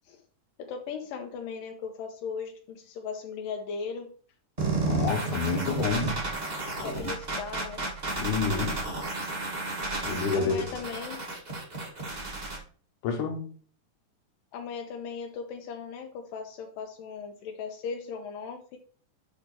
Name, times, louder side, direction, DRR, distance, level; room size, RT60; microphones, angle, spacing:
voice 1, 0.6-4.1 5.9-6.1 6.8-7.9 10.4-11.2 14.5-18.8, left 5 dB, 85° left, 3 dB, 2.5 m, -37 dB
sound 1, 4.6-12.6, right 2 dB, 35° right, 0.6 m, -32 dB
voice 2, 4.8-6.1 8.2-8.8 10.1-10.6 13.0-13.4, left 5 dB, 70° left, 4 dB, 2.8 m, -28 dB
7.5 x 5.3 x 4.4 m, 0.43 s
omnidirectional pair, 3.9 m